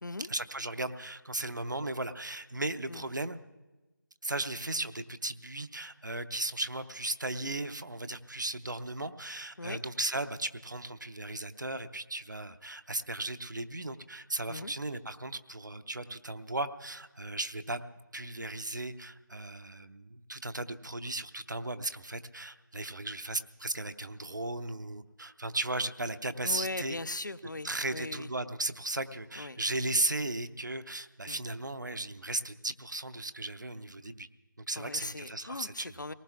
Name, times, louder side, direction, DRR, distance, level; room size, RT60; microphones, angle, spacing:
voice 1, 0.3-3.4 4.2-17.8 18.1-27.0 27.6-34.3 34.6-36.0, right 2 dB, 65° right, 11 dB, 0.7 m, -36 dB
voice 2, 26.4-28.3 29.4-29.6 31.3-31.4 34.8-36.1, left 2 dB, 65° left, 17 dB, 0.5 m, -39 dB
27.5 x 19.0 x 2.4 m, 1.1 s
figure-of-eight pair, 170°, 11 cm